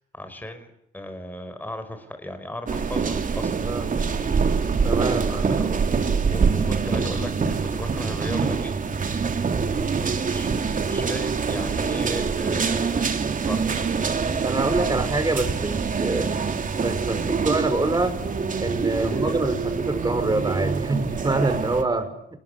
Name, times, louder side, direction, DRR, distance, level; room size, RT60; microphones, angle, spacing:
voice 1, 0.0-3.7 5.3-5.7 6.3-8.8 9.9-13.0 13.5-13.8 19.0-19.2, left 1 dB, 10° left, 8 dB, 4.8 m, -36 dB
sound 1, 2.7-21.8, right 5 dB, 40° right, 3.3 m, -25 dB
voice 2, 3.6-3.9 4.8-5.5 9.5-9.8 14.4-16.4 16.8-18.2 18.6-22.1, right 2 dB, 20° right, 10 dB, 5.8 m, -26 dB
28.5 x 20.0 x 9.8 m, 0.76 s
cardioid pair, 90°, 20 cm